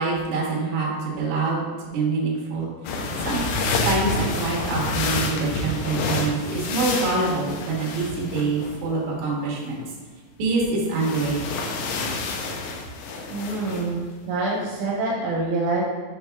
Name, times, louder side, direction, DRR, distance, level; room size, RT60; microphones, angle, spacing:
voice 1, 0.0-3.0 3.2-3.4 3.8-9.8 10.4-11.5, right 3 dB, 60° right, -3 dB, 2.2 m, -25 dB
sound 1, 2.9-8.8 10.9-13.9, left 3 dB, 80° left, 2.2 m, -28 dB
voice 2, 13.3-15.8, right 3 dB, 80° right, -2 dB, 2.9 m, -26 dB
6.9 x 5.3 x 3.5 m, 1.4 s
omnidirectional pair, 5.2 m